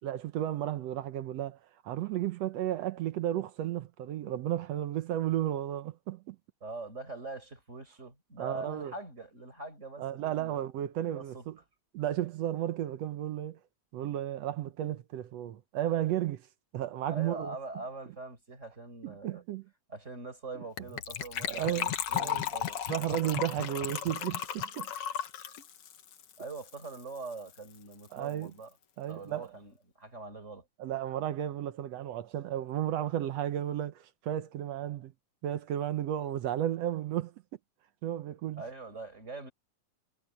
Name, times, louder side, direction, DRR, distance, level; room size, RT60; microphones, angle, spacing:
voice 1, 0.0-1.6 1.8-6.4 8.4-8.9 10.0-11.6 11.9-13.6 13.9-16.5 16.7-17.6 19.0-19.7 21.4-22.5 22.9-24.9 28.1-28.5 29.0-29.5 30.8-35.1 35.4-37.3 38.0-38.6, right 12 dB, 70° right, 1.9 m, -33 dB
voice 2, 6.6-10.7 11.1-11.4 17.1-19.4 19.9-22.8 26.4-28.7 29.1-30.7 38.6-39.5, right 3 dB, 25° right, 5.2 m, -43 dB
Gurgling / Trickle dribble / Fill (with liquid), 20.8-27.0 27.3-27.4 27.5-27.8 28.1-28.2, left 10 dB, 60° left, 2.1 m, -35 dB
omnidirectional pair, 3.3 m